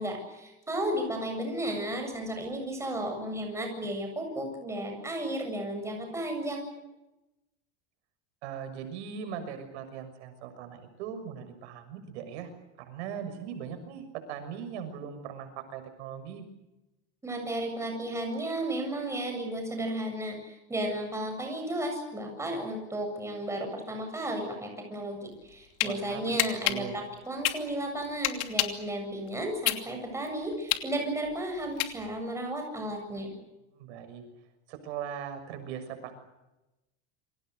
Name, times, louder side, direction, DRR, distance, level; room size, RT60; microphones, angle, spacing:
voice 1, 0.0-6.7 17.2-33.3, right 1 dB, 10° right, 3 dB, 7.6 m, -34 dB
voice 2, 8.4-12.5 12.8-16.4 25.8-27.0 33.7-34.2 34.7-36.2, right 8 dB, 85° right, 8 dB, 6.5 m, -40 dB
sound 1, 25.4-25.9 26.4-28.9 29.3-32.3, left 17 dB, 70° left, 2.9 m, -29 dB
28.5 x 24.5 x 6.6 m, 0.98 s
cardioid pair, 160°, 33 cm